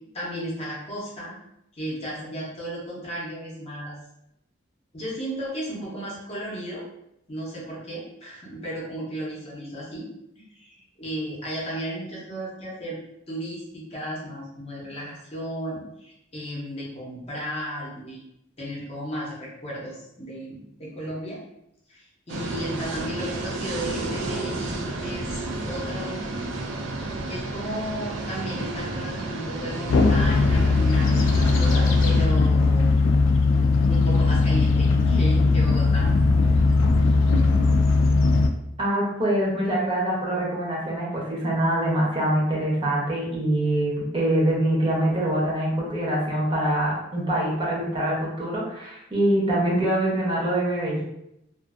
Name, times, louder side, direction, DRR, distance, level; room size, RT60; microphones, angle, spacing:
voice 1, 0.1-1.3 1.7-4.0 4.9-6.8 7.3-10.1 10.4-13.0 13.3-18.3 18.6-21.4 21.9-26.3 27.3-33.0 33.9-36.1, equal, 30° left, -4 dB, 0.7 m, -34 dB
sound 1, 22.3-32.3, right 2 dB, 75° right, 0.4 m, -31 dB
sound 2, 29.9-38.5, left 3 dB, 85° left, 0.3 m, -19 dB
voice 2, 38.8-51.0, right 1 dB, 30° right, -5 dB, 0.7 m, -24 dB
2.5 x 2.4 x 2.4 m, 0.81 s
head